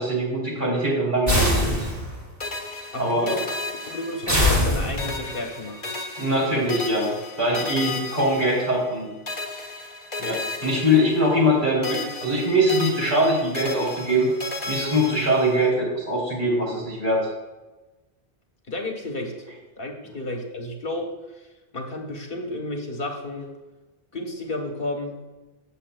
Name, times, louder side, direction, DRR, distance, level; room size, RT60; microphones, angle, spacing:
voice 1, 0.0-1.7 3.0-3.3 6.2-7.1 7.4-9.1 10.2-14.3 14.7-17.2, equal, 50° right, -5 dB, 3.4 m, -22 dB
sound 1, 1.3-2.3 4.3-5.3, left 1 dB, 15° right, 2.4 m, -22 dB
sound 2, 2.4-4.7 5.0-9.0 9.3-11.6 11.8-15.7, left 3 dB, 40° left, 1.5 m, -34 dB
voice 2, 2.7-3.4 3.7-5.9 6.6-6.7 7.5-7.6 18.7-19.5 19.8-21.5 21.7-23.5 24.1-25.2, left 1 dB, 65° left, 3 dB, 1.4 m, -32 dB
16.0 x 7.1 x 2.3 m, 1.1 s
omnidirectional pair, 1.0 m